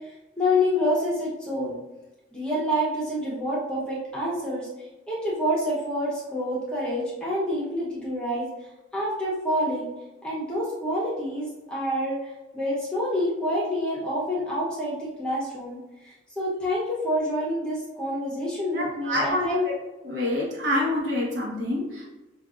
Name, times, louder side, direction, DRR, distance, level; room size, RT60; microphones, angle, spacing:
voice 1, 0.4-1.8 2.3-4.7 5.1-8.5 8.9-9.9 10.2-19.6 20.6-20.7, left 1 dB, 5° left, -7 dB, 0.9 m, -27 dB
voice 2, 18.7-19.7 20.0-22.2, left 1 dB, 60° right, -4 dB, 1.1 m, -27 dB
5.3 x 2.6 x 2.5 m, 1.0 s
head